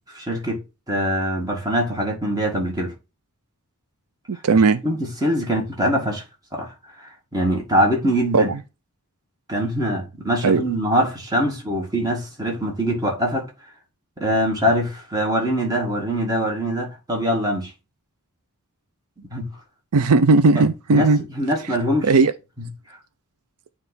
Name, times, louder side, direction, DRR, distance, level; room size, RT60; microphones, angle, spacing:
voice 1, 0.1-0.6 0.9-2.9 4.8-6.2 6.5-6.7 7.0-8.5 9.5-13.5 14.2-17.7 19.2-19.5 20.6-20.7 20.9-21.1 21.4-22.1, equal, 15° right, 2.0 m, -23 dB
voice 2, 4.3-4.8 8.3-8.6 10.4-10.6 19.9-21.2 22.0-22.3, right 3 dB, 80° right, 0.5 m, -16 dB
9.0 x 3.2 x 4.0 m
head